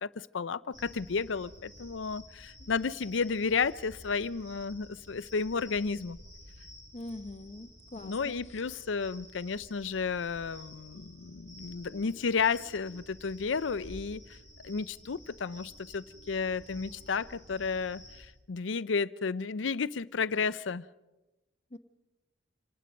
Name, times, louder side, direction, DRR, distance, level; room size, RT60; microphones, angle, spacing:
voice 1, 0.0-6.2 8.0-14.4 14.6-20.9, left 5 dB, 80° left, 17 dB, 0.6 m, -32 dB
sound 1, 0.7-18.2, equal, 90° right, 7.8 m, -52 dB
voice 2, 6.9-8.4 21.7-21.8, left 2 dB, 35° left, 11 dB, 0.9 m, -43 dB
27.0 x 19.0 x 5.2 m, 1.0 s
head